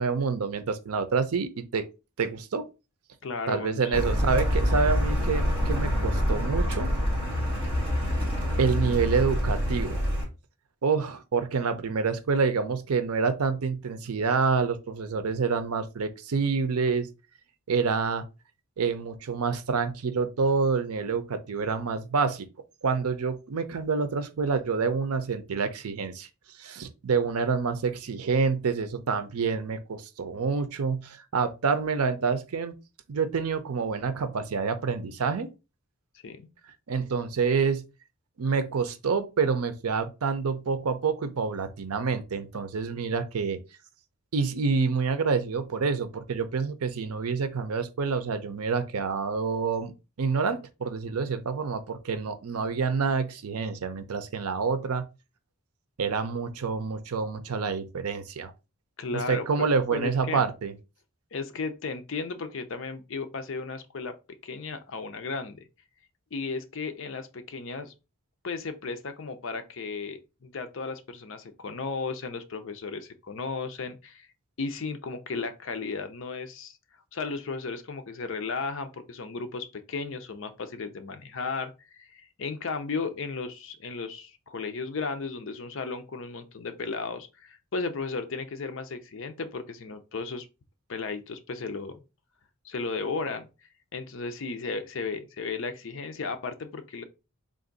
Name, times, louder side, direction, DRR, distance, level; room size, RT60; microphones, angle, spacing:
voice 1, 0.0-1.8 2.2-2.7 3.5-6.9 8.6-10.0 10.8-17.1 17.7-18.2 18.8-22.5 22.8-26.3 26.6-32.7 33.1-35.5 36.9-37.8 38.4-43.6 44.3-49.9 50.2-55.0 56.0-58.5 59.1-60.7, right 5 dB, 85° right, 0.6 m, -27 dB
voice 2, 3.2-3.9 36.2-36.5 59.0-60.4 61.3-64.1 64.4-65.7 66.3-67.9 68.4-74.3 74.6-76.8 77.1-90.5 90.9-92.0 92.6-93.5 93.9-97.0, left 4 dB, 60° left, 0.5 m, -35 dB
Car, 3.9-10.2, equal, 10° right, 1.8 m, -26 dB
3.5 x 2.6 x 3.8 m
head